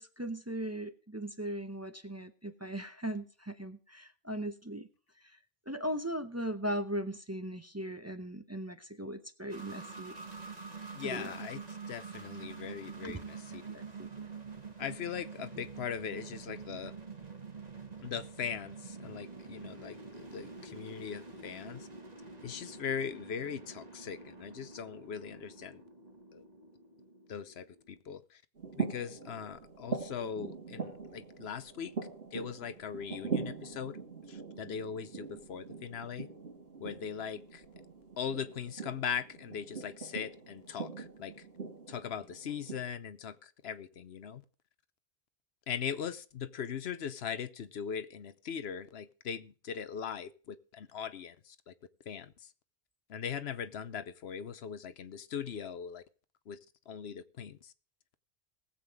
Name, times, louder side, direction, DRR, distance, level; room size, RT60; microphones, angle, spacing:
voice 1, 0.0-4.9 5.2-5.4 5.7-10.2 11.0-11.3 13.0-13.2 13.6-14.3, right 1 dB, 15° right, 0.7 m, -38 dB
sound 1, 9.5-28.0, right 4 dB, 40° right, 1.8 m, -47 dB
voice 2, 10.9-13.8 14.8-16.9 18.0-21.9 22.4-25.8 26.3-26.4 27.3-28.4 28.7-31.9 32.3-34.0 34.3-36.3 36.8-37.7 38.2-41.5 41.9-44.4 45.7-51.7 52.1-52.5 53.1-56.0 56.5-56.6 56.9-57.7, left 7 dB, 85° left, 1.0 m, -40 dB
sound 2, 28.6-42.8, right 5 dB, 75° right, 2.7 m, -42 dB
19.5 x 7.7 x 3.6 m
omnidirectional pair, 1.0 m